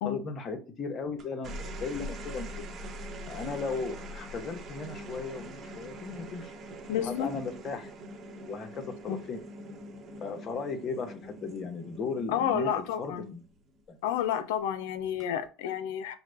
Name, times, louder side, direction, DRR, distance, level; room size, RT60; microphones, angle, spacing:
voice 1, 0.0-2.7 3.3-6.5 6.9-7.9 8.5-9.4 10.2-13.4 13.9-14.0, left 4 dB, 45° left, 0.9 m, -36 dB
sound 1, 1.2-13.8 15.0-15.5, right 1 dB, 45° right, 1.0 m, -43 dB
voice 2, 6.9-7.3 9.1-9.2 12.3-13.3 14.0-16.2, left 9 dB, 85° left, 0.5 m, -30 dB
5.6 x 2.2 x 2.6 m
supercardioid pair, 90°, 0 cm